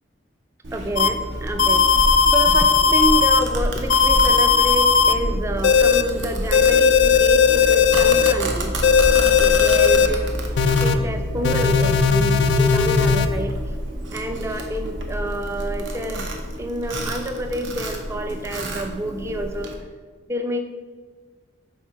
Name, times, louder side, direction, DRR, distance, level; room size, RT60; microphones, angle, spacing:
Domestic sounds home sounds, 0.6-19.7, right 1 dB, 70° right, 0.8 m, -28 dB
voice 1, 0.7-1.8 2.3-8.7 9.4-10.3 10.8-13.5 14.1-16.3 16.6-19.7 20.3-20.6, equal, 15° right, 6 dB, 0.3 m, -28 dB
sound 1, 1.0-1.1 1.6-3.4 3.9-5.1 5.6-6.0 6.5-8.3 8.8-10.1 10.6-10.9 11.4-13.3, left 6 dB, 65° left, 0.4 m, -17 dB
4.6 x 3.9 x 5.6 m, 1.5 s
head